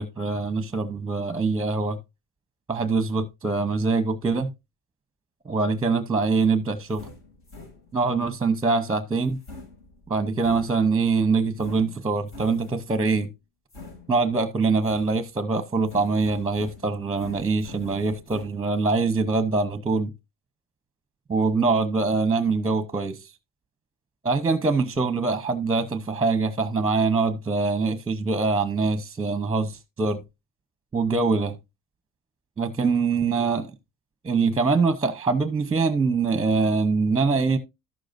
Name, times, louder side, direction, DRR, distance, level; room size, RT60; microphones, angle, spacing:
voice 1, 0.0-2.0 2.7-4.5 5.4-7.1 7.9-9.4 10.1-13.3 14.1-20.1 21.3-23.2 24.2-30.2 30.9-31.6 32.6-33.7 34.2-37.6, right 4 dB, 15° right, 0.8 m, -24 dB
sound 1, 6.7-8.2 9.2-11.1 11.6-13.0 13.7-14.5 14.8-15.5 15.9-18.4, left 3 dB, 70° left, 6.7 m, -45 dB
13.5 x 6.6 x 2.5 m
cardioid pair, 120°, 35 cm